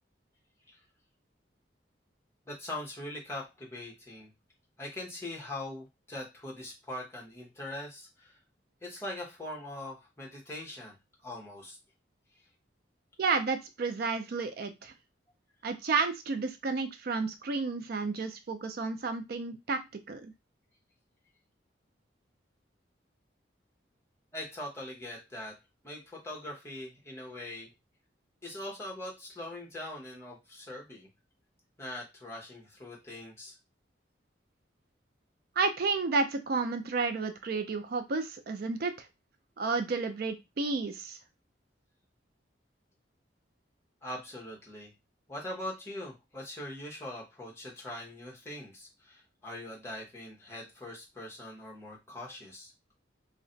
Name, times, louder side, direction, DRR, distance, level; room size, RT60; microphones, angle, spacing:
voice 1, 2.5-4.3 4.8-8.4 8.8-10.9 11.2-11.8 24.3-25.6 25.8-27.7 28.4-31.1 31.8-33.5 44.0-44.9 45.3-52.7, left 1 dB, 15° left, -3 dB, 0.9 m, -42 dB
voice 2, 13.2-14.9 15.6-20.3 35.6-39.1 39.6-41.2, right 4 dB, 55° right, 8 dB, 0.4 m, -31 dB
2.4 x 2.1 x 3.8 m, 0.22 s
head